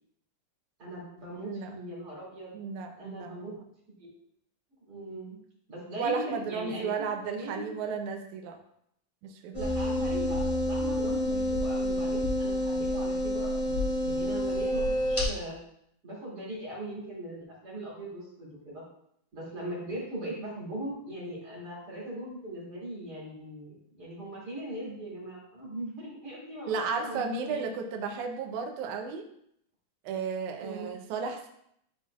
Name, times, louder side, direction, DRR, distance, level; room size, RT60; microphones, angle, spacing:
voice 1, 0.8-2.6 3.0-3.5 3.9-4.1 4.9-5.4 5.7-7.7 9.5-15.6 16.0-18.8 19.3-27.6 30.6-30.9, right 1 dB, 30° right, -6 dB, 2.5 m, -40 dB
voice 2, 1.4-1.7 2.5-3.4 6.0-8.6 9.2-9.5 26.7-29.3 30.0-31.5, right 5 dB, 75° right, 3 dB, 1.9 m, -33 dB
sound 1, 9.5-15.2, left 1 dB, 15° left, 1.1 m, -28 dB
11.5 x 4.4 x 2.4 m, 0.72 s
omnidirectional pair, 4.2 m